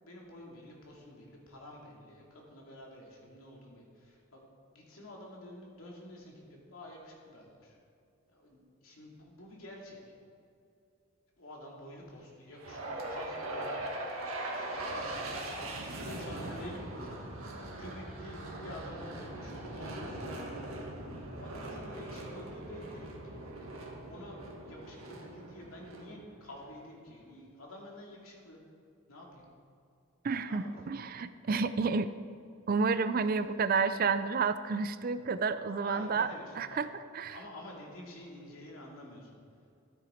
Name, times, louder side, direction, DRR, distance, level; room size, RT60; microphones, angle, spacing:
voice 1, 0.0-4.4 4.7-7.8 8.3-10.1 11.4-12.8 13.1-20.9 21.4-23.4 24.1-28.6 29.1-29.4 30.4-30.9 35.7-36.8 37.3-39.4, left 1 dB, 85° left, -2 dB, 2.6 m, -49 dB
sound 1, 12.6-26.8, right 1 dB, 85° right, 1.8 m, -41 dB
voice 2, 30.2-32.1 32.7-36.3 36.6-37.4, right 4 dB, 45° right, 12 dB, 0.4 m, -30 dB
13.0 x 9.0 x 4.4 m, 2.5 s
head